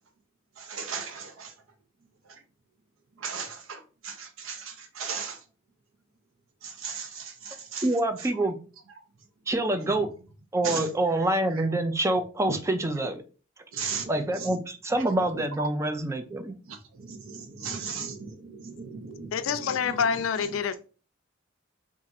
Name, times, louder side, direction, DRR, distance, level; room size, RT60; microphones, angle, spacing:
voice 1, 0.6-1.5 2.3-2.4 3.2-5.4 6.6-7.9 8.2-8.4 9.7-10.1 10.6-11.2 11.5-11.7 13.7-14.6 15.6-15.7 16.6-20.6, right 5 dB, 80° right, 0.7 m, -37 dB
voice 2, 7.8-8.6 9.5-10.1 10.5-13.2 14.1-16.6, right 1 dB, 15° right, 0.3 m, -26 dB
voice 3, 19.3-20.8, left 6 dB, 75° left, 0.4 m, -27 dB
2.5 x 2.4 x 4.0 m
head